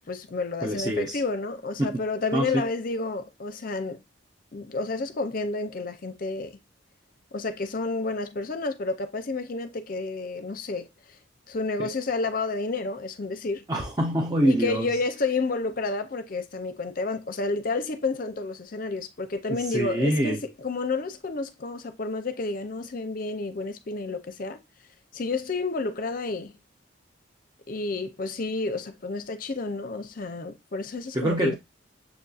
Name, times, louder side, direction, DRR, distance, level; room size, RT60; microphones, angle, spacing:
voice 1, 0.1-4.0 4.5-6.6 7.3-11.2 11.5-13.6 14.4-24.6 25.1-26.5 27.7-31.6, left 3 dB, 45° left, 0.5 m, -30 dB
voice 2, 0.6-1.2 1.8-2.0 2.3-2.7 11.8-11.9 13.7-14.9 19.5-20.4 31.1-31.6, right 1 dB, 20° right, 0.6 m, -25 dB
7.0 x 2.6 x 2.3 m
head